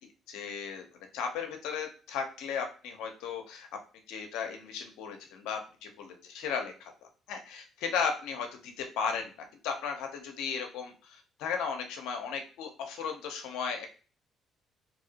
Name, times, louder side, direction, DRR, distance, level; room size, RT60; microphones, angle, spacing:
voice 1, 0.3-0.9 1.1-3.7 4.1-6.9 7.3-9.3 9.6-13.9, left 6 dB, 85° left, 4 dB, 0.6 m, -35 dB
2.7 x 2.7 x 2.8 m, 0.37 s
supercardioid pair, 75°, 0 cm